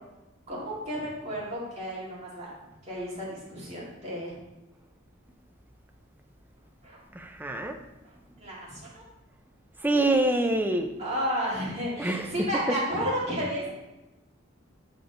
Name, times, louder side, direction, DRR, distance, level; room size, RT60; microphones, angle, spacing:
voice 1, 0.5-2.5 2.8-4.3 6.8-7.0 8.4-9.0 11.0-13.7, equal, 35° right, -6 dB, 2.1 m, -32 dB
voice 2, 7.1-7.8 9.8-10.9 12.0-12.3, right 2 dB, 10° right, 4 dB, 0.4 m, -25 dB
7.8 x 3.9 x 3.9 m, 1.0 s
head